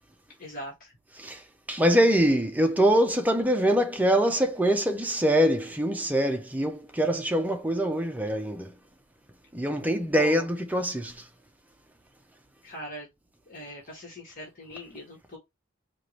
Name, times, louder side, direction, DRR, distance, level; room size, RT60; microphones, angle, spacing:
voice 1, 0.4-0.9 10.2-10.5 12.6-13.1 13.5-15.4, left 1 dB, 45° left, 1.5 m, -40 dB
voice 2, 1.7-8.7 9.5-11.2, equal, 10° right, 0.7 m, -24 dB
4.5 x 2.6 x 3.1 m
head